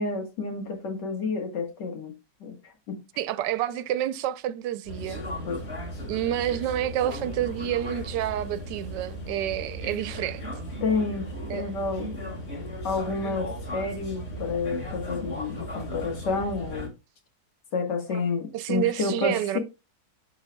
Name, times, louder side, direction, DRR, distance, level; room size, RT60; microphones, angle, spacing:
voice 1, 0.0-2.1 2.4-2.6 2.9-3.0 5.5-5.6 10.8-12.2 12.8-16.9 17.7-19.6, left 4 dB, 85° left, 2.1 m, -29 dB
voice 2, 3.2-5.2 6.1-10.4 11.5-11.7 18.5-19.6, right 11 dB, 90° right, 1.2 m, -29 dB
sound 1, 4.9-16.9, equal, 40° left, 2.1 m, -36 dB
11.0 x 4.0 x 2.2 m
omnidirectional pair, 1.8 m